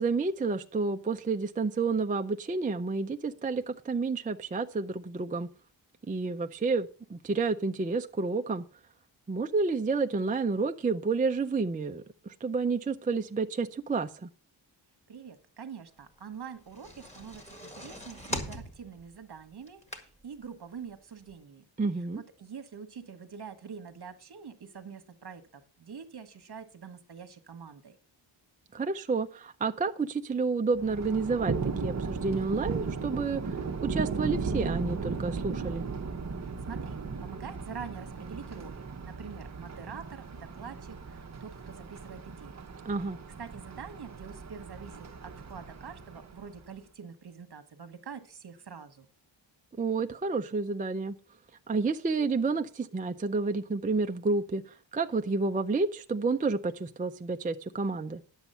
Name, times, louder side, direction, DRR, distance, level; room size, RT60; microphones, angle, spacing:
voice 1, 0.0-5.5 6.1-8.6 9.3-14.3 21.8-22.2 28.7-35.8 42.9-43.2 49.8-51.1 51.7-58.2, right 4 dB, 20° right, 0.4 m, -30 dB
voice 2, 15.1-21.6 22.4-28.0 36.7-42.6 43.4-49.1, right 6 dB, 55° right, 1.3 m, -45 dB
sound 1, 16.5-20.4 20.9-21.0 21.3-21.4, equal, 15° left, 1.7 m, -40 dB
Thunder, 30.8-46.7, right 4 dB, 35° right, 0.9 m, -36 dB
10.5 x 7.2 x 5.5 m
wide cardioid pair, 170°, 47 cm